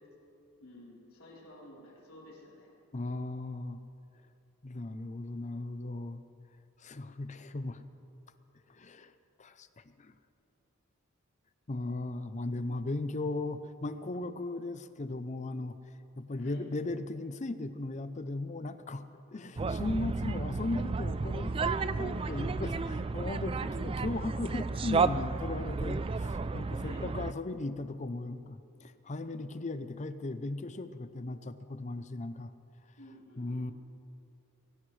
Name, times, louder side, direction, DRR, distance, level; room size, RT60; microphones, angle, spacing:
voice 1, 0.6-2.7 16.4-16.6 22.2-23.0 26.8-27.1 33.0-33.7, left 1 dB, 70° left, -5 dB, 3.9 m, -52 dB
voice 2, 2.9-3.8 4.6-6.2 6.8-7.8 8.7-9.1 9.4-10.1 11.7-15.7 16.2-19.0 19.3-22.7 23.1-32.5 33.4-33.7, left 2 dB, 30° left, 11 dB, 0.6 m, -37 dB
sound 1, 19.6-27.3, right 4 dB, 25° right, 0.3 m, -32 dB
23.5 x 17.0 x 3.3 m, 2.7 s
head